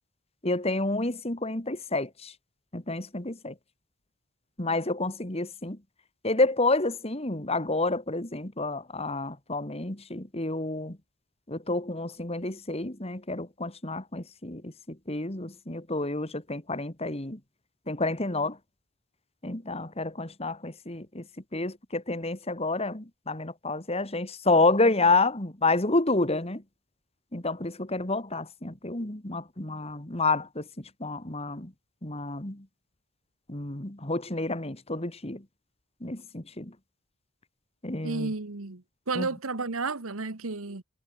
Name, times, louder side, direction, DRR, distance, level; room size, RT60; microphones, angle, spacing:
voice 1, 0.4-2.3 2.7-3.6 4.6-5.8 6.2-11.0 11.5-17.4 17.9-18.6 19.4-21.3 21.5-26.6 27.3-31.7 32.0-32.7 33.5-35.5 36.0-36.8 37.8-38.3 39.1-39.3, left 2 dB, 30° left, 2.3 m, -29 dB
voice 2, 38.0-40.8, right 3 dB, 90° right, 1.5 m, -32 dB
head